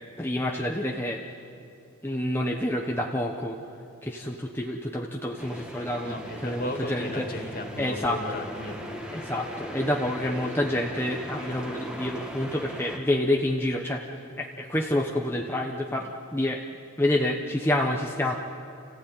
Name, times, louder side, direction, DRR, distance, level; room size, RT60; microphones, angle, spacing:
voice 1, 0.2-1.2 2.0-3.6 4.0-7.5 7.8-8.2 9.1-14.0 14.4-16.6 17.0-18.3, left 1 dB, 10° left, 0 dB, 1.0 m, -28 dB
sound 1, 5.4-13.0, equal, 5° right, 2.0 m, -39 dB
voice 2, 6.0-9.0, left 1 dB, 45° left, 3 dB, 2.6 m, -35 dB
30.0 x 15.5 x 9.5 m, 2.7 s
head